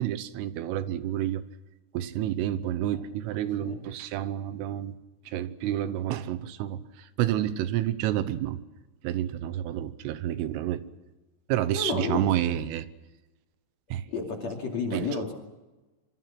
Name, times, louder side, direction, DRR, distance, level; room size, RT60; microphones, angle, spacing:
voice 1, 0.0-1.4 1.9-5.0 5.3-8.6 9.0-10.8 11.5-12.9 13.9-14.1 14.9-15.1, right 12 dB, 80° right, 13 dB, 3.5 m, -29 dB
voice 2, 3.6-3.9 11.7-12.3 14.1-15.3, left 4 dB, 40° left, 1 dB, 3.0 m, -31 dB
25.5 x 25.5 x 5.9 m, 1.1 s
omnidirectional pair, 5.9 m